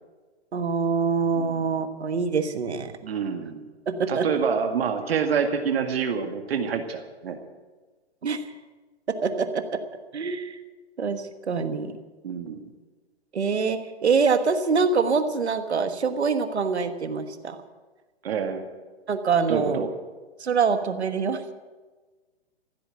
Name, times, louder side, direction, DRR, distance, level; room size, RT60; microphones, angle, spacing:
voice 1, 0.5-2.9 3.9-4.4 8.2-8.4 9.2-9.8 10.1-10.6 11.0-11.9 13.3-17.6 19.1-19.8 20.4-21.4, right 5 dB, 90° right, 9 dB, 1.4 m, -25 dB
voice 2, 1.3-1.7 3.0-3.7 4.1-7.4 12.2-12.6 18.2-18.7 19.5-19.9, right 6 dB, 65° right, 5 dB, 2.0 m, -27 dB
15.0 x 8.3 x 9.9 m, 1.3 s
hypercardioid pair, 140°, 32 cm